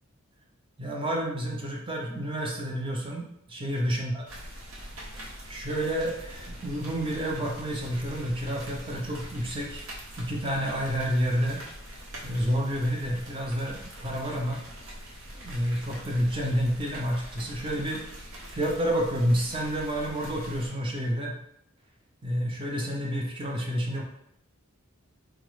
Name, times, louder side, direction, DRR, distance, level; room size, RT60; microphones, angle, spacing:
voice 1, 0.8-4.2 5.5-9.8 10.2-11.6 12.2-14.6 15.3-18.0 18.5-21.3 22.2-24.0, equal, 25° right, -1 dB, 0.6 m, -29 dB
sound 1, 4.3-20.7, equal, 75° right, 0.8 m, -43 dB
3.5 x 2.0 x 3.1 m, 0.75 s
head